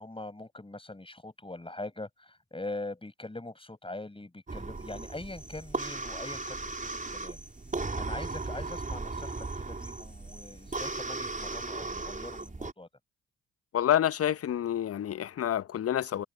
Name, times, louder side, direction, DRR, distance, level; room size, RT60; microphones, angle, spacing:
voice 1, 0.0-7.4 7.9-12.9, left 2 dB, 15° left, 6.5 m, -42 dB
sound 1, 4.5-12.7, right 3 dB, 20° right, 4.5 m, -37 dB
sound 2, 4.7-12.5, equal, 5° right, 7.9 m, -54 dB
voice 2, 13.7-16.2, left 11 dB, 40° left, 0.9 m, -28 dB
figure-of-eight pair, 45°, 38 cm